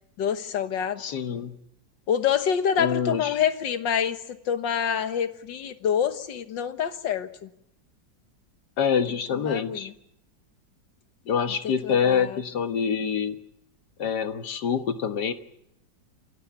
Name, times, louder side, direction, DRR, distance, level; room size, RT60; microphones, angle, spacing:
voice 1, 0.2-1.0 2.1-4.2 4.5-7.5 9.4-9.9 11.8-12.4, left 8 dB, 85° left, 10 dB, 2.0 m, -26 dB
voice 2, 1.0-1.6 2.8-3.4 8.8-9.9 11.3-13.4 14.0-15.3, left 7 dB, 65° left, 8 dB, 1.9 m, -26 dB
27.5 x 13.0 x 9.3 m, 0.79 s
omnidirectional pair, 1.9 m